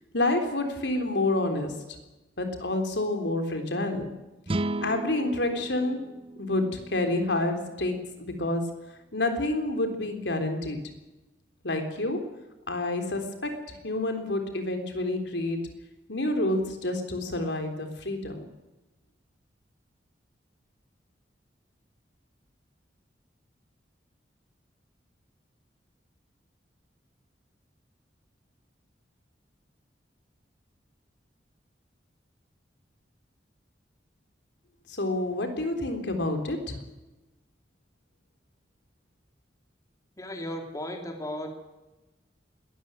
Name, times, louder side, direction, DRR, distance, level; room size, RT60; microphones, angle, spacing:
voice 1, 0.1-1.8 2.4-4.1 4.8-6.1 6.4-8.8 9.1-10.8 11.6-12.3 12.7-15.6 16.1-18.4 34.9-36.8, left 2 dB, 80° left, 5 dB, 3.7 m, -28 dB
sound 1, 4.5-7.8, right 2 dB, 30° right, 0.6 m, -35 dB
voice 2, 40.2-41.6, left 1 dB, 20° left, 3 dB, 2.7 m, -35 dB
21.0 x 13.5 x 9.1 m, 1.0 s
head